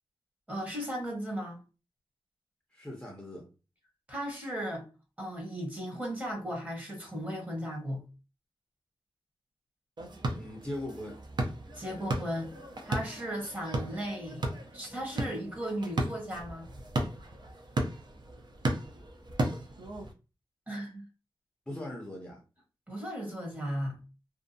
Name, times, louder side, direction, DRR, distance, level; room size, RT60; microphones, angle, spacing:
voice 1, 0.5-1.6 4.1-4.9 5.2-8.0 11.7-12.5 12.8-14.5 14.7-16.7 20.7-21.0 22.9-24.0, equal, 15° right, 0.9 m, -36 dB
voice 2, 2.7-3.5 10.3-11.2 21.7-22.4, left 1 dB, 10° left, 0.6 m, -40 dB
sound 1, 10.0-20.1, right 2 dB, 50° right, 0.5 m, -35 dB
2.6 x 2.2 x 2.5 m
wide cardioid pair, 130°, 9 cm